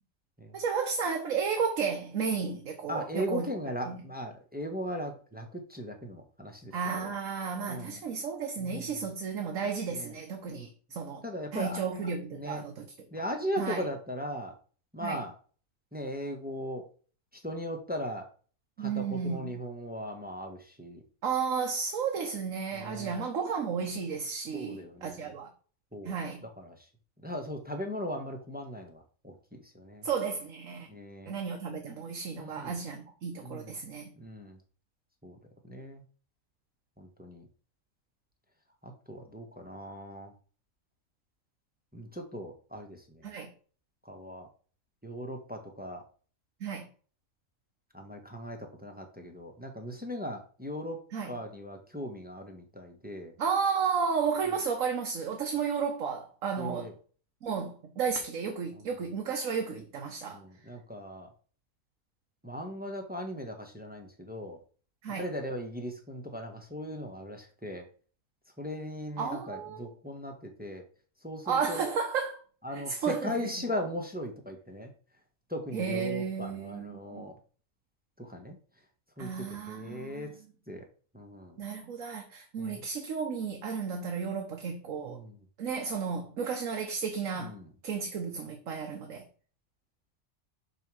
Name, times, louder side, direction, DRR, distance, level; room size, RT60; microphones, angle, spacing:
voice 1, 0.5-3.5 3.8-4.1 6.7-11.2 11.5-12.8 13.2-13.3 13.6-13.8 15.0-15.2 18.8-19.5 21.2-25.5 26.0-26.4 30.0-30.9 31.3-34.1 43.2-43.5 46.6-46.8 51.1-51.4 53.4-56.9 57.4-60.4 65.0-65.3 69.2-69.9 71.5-72.4 72.7-73.5 75.7-77.3 79.2-80.4 81.6-85.2 85.6-87.6 87.8-89.3, right 6 dB, 70° right, 1.4 m, -33 dB
voice 2, 2.9-7.1 7.7-8.0 8.6-8.9 9.9-10.1 10.5-10.7 11.2-11.8 12.3-12.6 13.1-14.5 14.9-15.3 15.9-16.8 17.4-18.3 18.8-21.0 22.7-23.2 24.5-25.3 25.9-26.2 26.6-26.7 27.2-29.3 29.7-30.1 30.9-31.4 32.4-32.8 33.4-33.7 34.2-34.6 35.2-35.4 35.6-36.0 37.0-37.5 38.8-40.3 41.9-43.2 44.0-44.5 45.0-46.0 47.9-51.0 51.3-53.3 56.6-56.9 60.3-61.3 62.4-64.6 65.1-67.8 68.6-70.8 71.2-71.9 72.6-74.9 75.5-77.3 78.2-78.6 79.2-79.3 79.7-80.3 80.7-80.8 81.1-81.6 82.6-82.8 85.1-85.3 87.3-87.7, equal, 5° right, 1.1 m, -38 dB
5.5 x 4.5 x 6.2 m
omnidirectional pair, 1.5 m